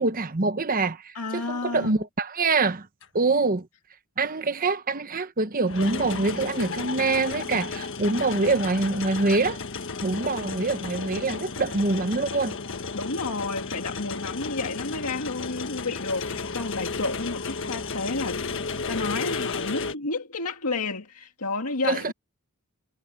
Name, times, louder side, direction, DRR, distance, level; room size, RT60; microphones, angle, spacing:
voice 1, 0.0-2.9 3.1-3.7 4.2-9.6 10.0-12.6 21.8-22.1, right 3 dB, 40° right, 1.0 m, -25 dB
voice 2, 1.1-2.0 12.9-18.4 18.9-22.1, left 3 dB, 85° left, 2.0 m, -31 dB
sound 1, 3.0-3.1 5.7-19.9, left 4 dB, 60° left, 1.5 m, -33 dB
head